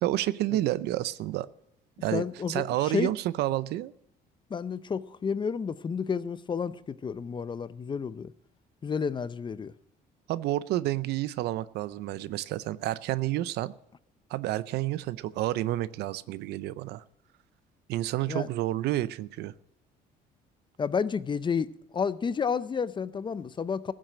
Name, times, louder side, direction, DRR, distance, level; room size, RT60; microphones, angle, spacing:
voice 1, 0.0-1.5 2.0-3.9 10.3-13.7 14.3-17.0 17.9-19.5, right 15 dB, 80° right, 0.6 m, -30 dB
voice 2, 2.1-3.1 4.5-8.3 8.8-9.7 18.3-18.5 20.8-21.7 21.9-23.9, left 6 dB, 30° left, 0.6 m, -31 dB
15.5 x 7.5 x 9.0 m
cardioid pair, 110°, 17 cm